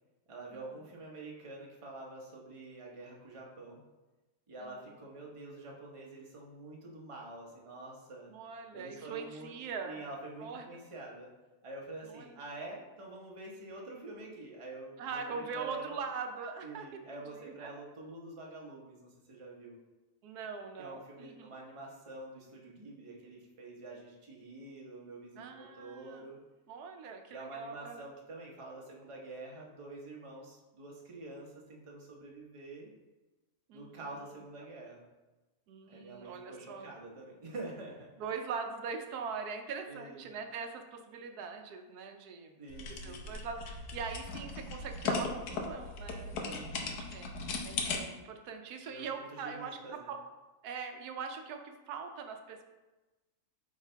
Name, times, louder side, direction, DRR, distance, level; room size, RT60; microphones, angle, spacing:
voice 1, 0.3-3.8 4.5-8.3 8.7-9.6 9.8-11.3 11.6-16.0 16.6-19.8 20.8-26.4 27.3-32.9 33.7-35.0 35.9-38.1 39.9-40.3 42.6-43.3 46.4-47.0 48.9-50.1, right 2 dB, 25° right, -2 dB, 0.9 m, -47 dB
voice 2, 4.6-4.9 8.3-10.0 10.4-10.7 12.0-12.3 15.0-16.9 17.3-17.7 20.2-21.5 25.4-26.3 26.7-28.1 33.7-34.0 35.7-36.9 38.2-42.6 42.9-47.3 47.6-49.8 50.1-50.2 50.6-52.6, right 5 dB, 85° right, 5 dB, 1.2 m, -42 dB
sound 1, 42.7-48.0, left 4 dB, 85° left, 1.3 m, -37 dB
8.1 x 3.7 x 3.4 m, 1.1 s
omnidirectional pair, 1.6 m